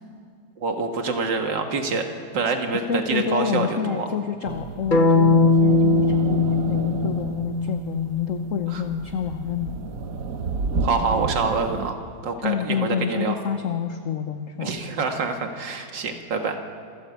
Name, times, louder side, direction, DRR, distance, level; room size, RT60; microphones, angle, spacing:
voice 1, 0.6-4.1 8.7-8.8 10.8-13.4 14.6-16.6, right 4 dB, 90° right, 4 dB, 2.3 m, -26 dB
voice 2, 2.7-9.7 12.4-14.7, left 7 dB, 55° left, 7 dB, 1.2 m, -28 dB
sound 1, 4.4-11.9, right 4 dB, 55° right, 1.3 m, -32 dB
sound 2, 4.9-9.0, left 2 dB, 35° left, 1.0 m, -21 dB
27.0 x 14.0 x 8.2 m, 2.3 s
omnidirectional pair, 1.9 m